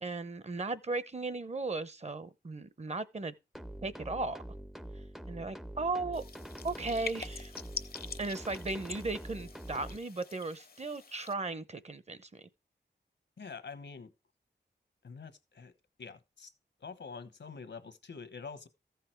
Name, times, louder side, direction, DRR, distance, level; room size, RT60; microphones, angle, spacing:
voice 1, 0.0-3.3 3.8-4.4 5.3-6.2 6.6-7.5 8.2-12.4, right 3 dB, 40° right, 0.7 m, -36 dB
sound 1, 3.5-10.0, right 1 dB, ahead, 0.5 m, -45 dB
sound 2, 6.1-11.3, left 5 dB, 55° left, 0.7 m, -45 dB
voice 2, 13.4-14.1 15.0-15.7 16.0-16.5 16.8-18.7, left 5 dB, 80° left, 1.1 m, -46 dB
14.0 x 5.8 x 4.5 m
wide cardioid pair, 105°, 18 cm